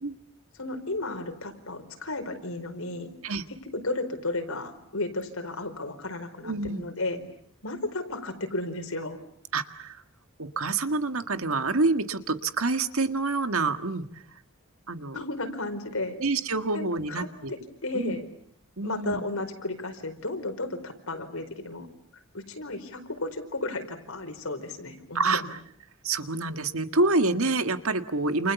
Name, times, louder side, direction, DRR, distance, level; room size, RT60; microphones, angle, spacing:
voice 1, 0.6-3.1 3.7-7.2 7.6-9.2 15.1-16.2 16.7-18.3 18.8-21.9 22.3-25.5, left 2 dB, 75° left, 6 dB, 4.6 m, -33 dB
voice 2, 6.4-6.9 9.5-10.0 10.4-14.2 14.9-15.2 16.2-17.5 17.9-18.2 18.8-19.2 25.1-25.6 26.0-28.5, right 3 dB, 75° right, 9 dB, 1.8 m, -27 dB
29.5 x 28.5 x 7.1 m, 0.68 s
head